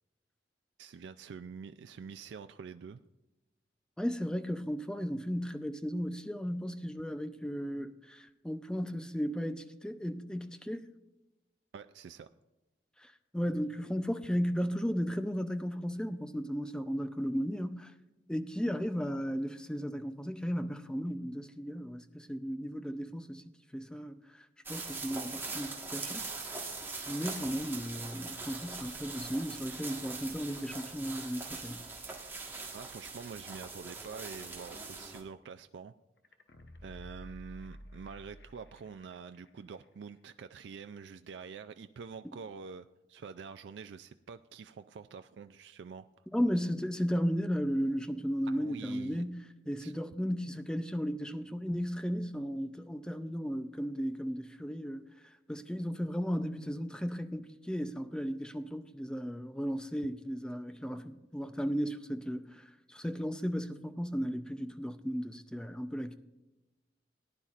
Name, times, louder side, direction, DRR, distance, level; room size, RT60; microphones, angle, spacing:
voice 1, 0.8-3.0 11.7-12.3 32.7-35.9 36.8-46.1 48.5-49.2 49.8-49.9, right 6 dB, 75° right, 0.4 m, -46 dB
voice 2, 4.0-10.9 13.0-17.9 18.3-23.4 23.7-24.4 24.7-26.3 27.1-31.9 46.3-55.0 55.5-66.1, equal, 5° left, 0.5 m, -35 dB
sound 1, 24.7-35.2, right 3 dB, 10° right, 1.5 m, -42 dB
sound 2, 36.2-39.1 39.5-39.6, equal, 65° left, 0.9 m, -50 dB
18.5 x 10.0 x 2.5 m
head